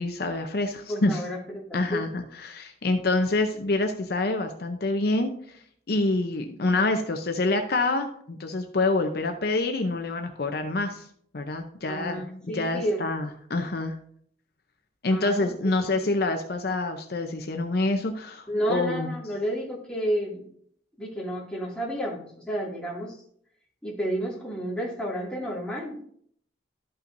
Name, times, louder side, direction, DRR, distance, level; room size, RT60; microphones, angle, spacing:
voice 1, 0.0-1.2 1.7-5.3 5.9-11.0 11.3-13.9 15.0-19.1, left 2 dB, 60° left, 5 dB, 0.7 m, -26 dB
voice 2, 0.9-2.0 11.8-13.0 15.1-15.5 18.5-20.4 21.0-23.2 23.8-26.0, equal, 5° left, -5 dB, 2.3 m, -31 dB
12.5 x 5.6 x 2.6 m, 0.63 s
head